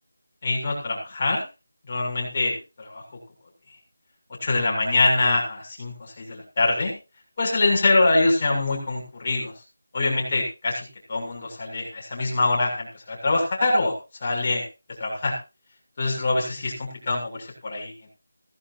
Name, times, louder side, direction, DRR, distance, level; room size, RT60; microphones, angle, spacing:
voice 1, 0.4-1.4 1.9-3.0 4.4-6.9 7.4-9.5 9.9-13.9 14.2-14.6 15.0-15.3 16.0-18.1, left 2 dB, 35° left, 0 dB, 7.1 m, -24 dB
17.0 x 15.0 x 2.8 m, 0.29 s
figure-of-eight pair, 170°, 0 cm